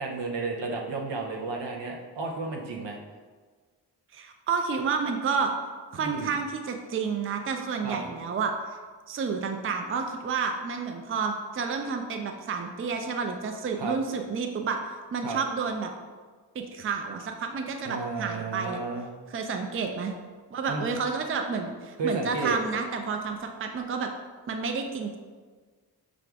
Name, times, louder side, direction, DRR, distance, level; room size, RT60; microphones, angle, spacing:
voice 1, 0.0-3.0 6.0-6.3 7.8-8.0 13.8-13.9 15.2-15.4 17.8-19.1 20.7-20.9 22.0-22.6, right 3 dB, 75° right, 0 dB, 0.8 m, -32 dB
voice 2, 4.1-5.5 5.9-8.5 9.1-14.8 15.1-15.9 16.5-18.8 19.3-20.1 20.5-24.1 24.5-25.2, right 5 dB, 30° right, 4 dB, 0.5 m, -30 dB
4.8 x 2.5 x 3.4 m, 1.5 s
cardioid pair, 45°, 44 cm